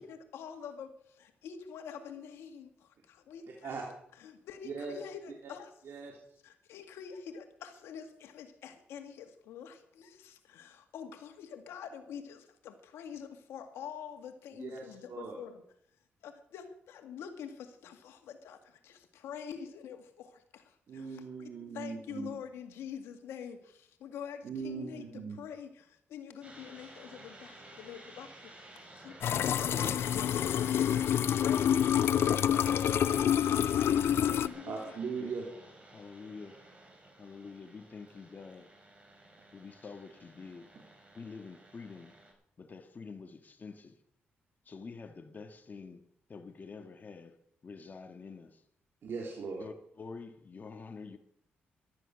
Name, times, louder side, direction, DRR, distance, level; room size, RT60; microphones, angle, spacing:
voice 1, 0.0-3.8 4.2-5.7 6.4-15.6 16.2-21.5 21.7-28.7 29.0-32.9 33.5-35.0, left 7 dB, 90° left, 2.0 m, -46 dB
voice 2, 4.6-5.0 5.8-6.4 14.5-15.4 20.9-22.3 24.4-25.4 34.6-35.5 49.0-49.7, right 5 dB, 70° right, 3.4 m, -39 dB
sound 1, 26.4-42.3, right 1 dB, 30° right, 6.4 m, -52 dB
sound 2, 29.2-34.5, left 9 dB, 70° left, 0.5 m, -27 dB
voice 3, 35.9-36.6 37.2-38.7 39.5-40.7 41.1-42.2 42.6-44.0 44.6-47.4 47.6-48.6 49.6-51.2, left 4 dB, 45° left, 1.7 m, -47 dB
14.5 x 12.5 x 6.4 m
cardioid pair, 65°, 4 cm